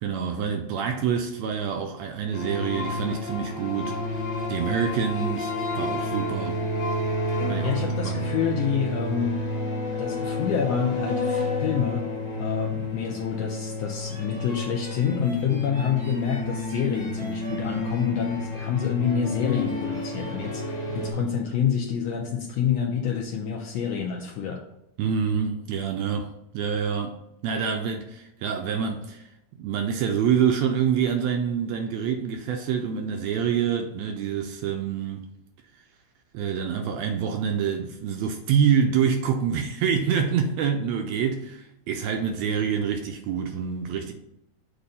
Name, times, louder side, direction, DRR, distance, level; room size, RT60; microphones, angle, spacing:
voice 1, 0.0-4.0 4.5-6.6 7.5-8.2 25.0-26.3 26.5-27.2 27.4-29.2 29.6-35.2 36.3-44.1, right 7 dB, 80° right, 1.6 m, -26 dB
sound 1, 2.3-21.1, left 2 dB, 45° left, 1.5 m, -30 dB
voice 2, 7.6-9.4 10.0-12.0 12.4-24.6, left 7 dB, 75° left, 1.6 m, -27 dB
sound 2, 14.0-21.2, right 1 dB, 50° right, 0.7 m, -43 dB
6.8 x 2.6 x 5.4 m
omnidirectional pair, 3.4 m